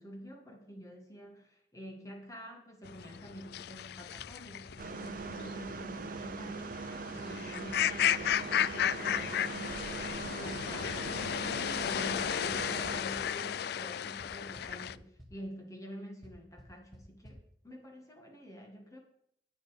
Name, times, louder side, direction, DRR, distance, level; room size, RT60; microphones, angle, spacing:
voice 1, 0.0-6.8 7.1-11.1 11.5-17.4 17.6-19.0, equal, 20° left, 2 dB, 1.8 m, -47 dB
sound 1, 2.9-14.9, left 10 dB, 60° left, 0.3 m, -34 dB
sound 2, 4.2-4.3 4.7-4.8 5.2-5.3 5.7-5.8 6.2-6.3 6.7-6.8 7.2-7.3 7.7-7.8 8.2-8.3 8.7-8.8 9.2-9.3 9.7-9.8 10.2-11.2 12.2-13.3 14.2-14.3 14.6-14.9 15.2-15.3 16.2-16.3 16.6-16.7 16.9-17.0 17.2-17.3, equal, ahead, 1.9 m, -52 dB
sound 3, 4.8-13.0, right 4 dB, 50° right, 0.6 m, -41 dB
10.5 x 9.4 x 5.0 m, 0.70 s
head